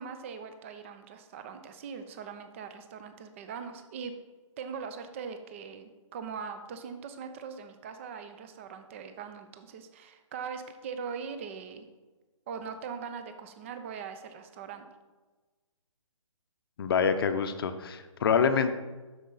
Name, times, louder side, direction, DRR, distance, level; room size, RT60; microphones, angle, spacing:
voice 1, 0.0-4.1 4.6-11.9 12.5-14.8, right 6 dB, 25° right, 8 dB, 0.5 m, -41 dB
voice 2, 16.8-18.7, left 6 dB, 45° left, 9 dB, 0.6 m, -26 dB
7.5 x 6.4 x 3.9 m, 1.2 s
figure-of-eight pair, 145°, 17 cm